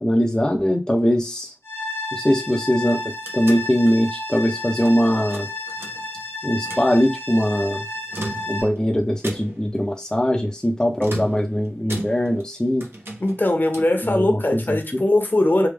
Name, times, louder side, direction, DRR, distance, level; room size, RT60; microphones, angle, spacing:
voice 1, 0.0-1.5 2.1-5.5 6.4-7.8 8.5-12.9 14.0-15.0, equal, 15° left, 0.6 m, -21 dB
sound 1, 1.6-8.6, left 2 dB, 85° left, 1.3 m, -32 dB
sound 2, 2.8-5.0 5.3-6.3 6.6-6.9 7.9-8.8 9.2-9.8 11.0-12.5 12.8-14.0, right 1 dB, 65° right, 1.0 m, -35 dB
voice 2, 13.2-15.7, left 1 dB, 50° left, 0.9 m, -20 dB
3.5 x 3.0 x 3.3 m
wide cardioid pair, 50°, 4 cm